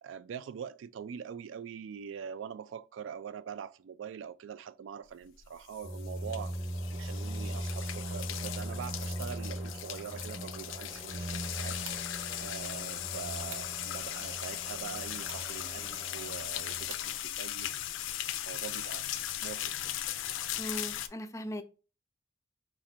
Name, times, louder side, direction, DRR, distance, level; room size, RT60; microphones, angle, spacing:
voice 1, 0.0-6.6 6.9-12.1 12.4-17.7 18.5-19.1 19.4-19.9, right 7 dB, 75° right, 0.3 m, -43 dB
sound 1, 5.4-21.1, left 12 dB, 80° left, 0.4 m, -38 dB
sound 2, 5.8-16.9, right 1 dB, 30° right, 0.8 m, -40 dB
sound 3, 11.4-17.8, right 6 dB, 90° right, 0.9 m, -54 dB
voice 2, 20.6-21.6, equal, 15° left, 0.4 m, -38 dB
4.3 x 2.5 x 4.3 m
head